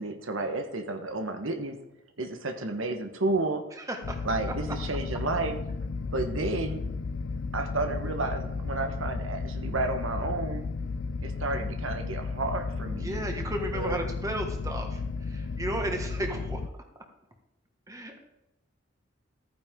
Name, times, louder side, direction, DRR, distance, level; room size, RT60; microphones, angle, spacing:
voice 1, 0.0-1.8 2.2-3.6 4.2-5.6 6.1-6.8 7.5-10.6 11.2-13.2 13.7-14.0, right 2 dB, 80° right, 5 dB, 1.3 m, -31 dB
voice 2, 3.7-4.2 13.0-16.6 17.9-18.2, right 1 dB, 15° right, 3 dB, 1.6 m, -34 dB
sound 1, 4.0-16.7, left 4 dB, 60° left, 0.5 m, -34 dB
14.5 x 9.8 x 3.7 m, 0.88 s
head